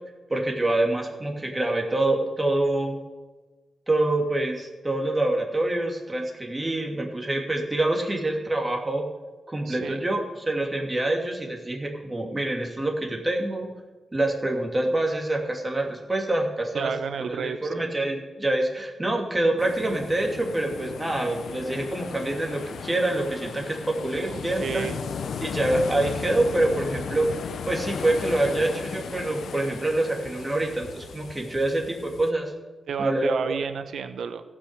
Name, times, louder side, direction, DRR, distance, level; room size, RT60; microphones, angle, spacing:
voice 1, 0.3-3.0 3.9-9.1 9.5-13.7 14.1-16.9 17.2-24.9 25.4-32.5 33.0-33.6, right 2 dB, 20° right, 1 dB, 2.6 m, -26 dB
voice 2, 9.7-10.0 16.7-17.8 20.9-21.0 24.3-25.0 32.9-34.4, right 6 dB, 80° right, 10 dB, 0.8 m, -31 dB
sound 1, 19.6-32.3, left 6 dB, 80° left, 0.7 m, -36 dB
15.0 x 6.4 x 6.7 m, 1.2 s
cardioid pair, 70°, 0 cm